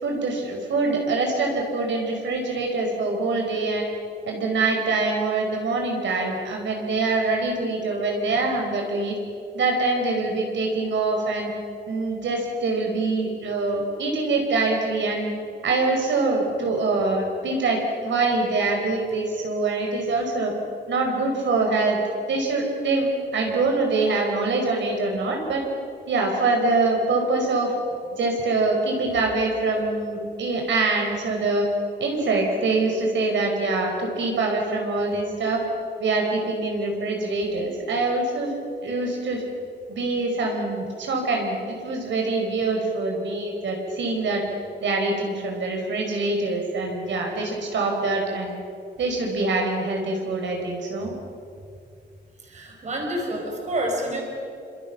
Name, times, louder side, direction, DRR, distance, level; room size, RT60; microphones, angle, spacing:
voice 1, 0.0-3.9 4.3-9.2 9.5-11.5 11.9-15.3 15.6-20.5 20.9-22.0 22.3-25.6 26.1-27.7 28.1-31.7 32.0-35.6 36.0-39.4 39.9-41.6 41.8-44.4 44.8-48.5 49.0-51.1, right 3 dB, 80° right, 1 dB, 5.0 m, -24 dB
voice 2, 52.4-54.2, right 1 dB, 40° right, 0 dB, 5.2 m, -28 dB
28.5 x 26.0 x 6.1 m, 2.4 s
wide cardioid pair, 180°, 19 cm